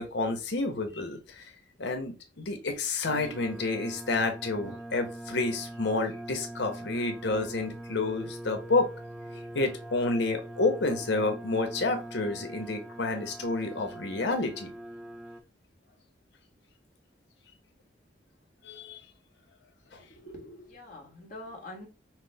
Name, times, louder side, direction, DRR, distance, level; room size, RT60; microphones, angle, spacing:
voice 1, 0.0-1.4 1.8-8.9 9.5-14.7 18.6-19.0 19.9-20.0, left 3 dB, 70° left, 6 dB, 0.9 m, -29 dB
sound 1, 3.0-15.4, right 1 dB, 5° right, 0.3 m, -43 dB
voice 2, 20.0-21.9, left 1 dB, 45° left, -1 dB, 1.4 m, -45 dB
5.9 x 2.0 x 3.4 m, 0.31 s
head